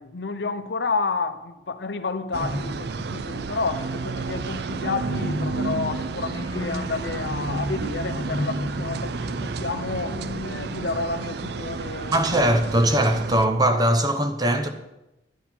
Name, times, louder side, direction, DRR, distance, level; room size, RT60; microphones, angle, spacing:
voice 1, 0.0-12.5, left 4 dB, 60° left, 0.7 m, -30 dB
sound 1, 2.3-13.5, right 4 dB, 60° right, 0.4 m, -31 dB
sound 2, 2.4-3.5 5.1-11.5, left 1 dB, 20° left, 0.5 m, -34 dB
voice 2, 12.1-14.7, right 1 dB, 20° right, 0.8 m, -20 dB
10.5 x 10.0 x 4.4 m
head